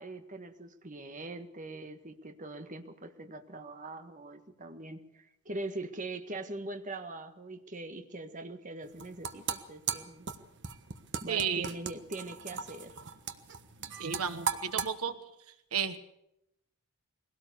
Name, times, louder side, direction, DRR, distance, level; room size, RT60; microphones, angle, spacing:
voice 1, 0.0-10.3 11.2-13.0, right 2 dB, 35° right, 6 dB, 1.6 m, -42 dB
sound 1, 8.8-14.9, right 6 dB, 55° right, 1.3 m, -37 dB
voice 2, 11.3-11.6 14.0-15.1 15.7-16.0, right 7 dB, 85° right, 10 dB, 1.4 m, -32 dB
22.0 x 17.5 x 6.9 m, 0.82 s
head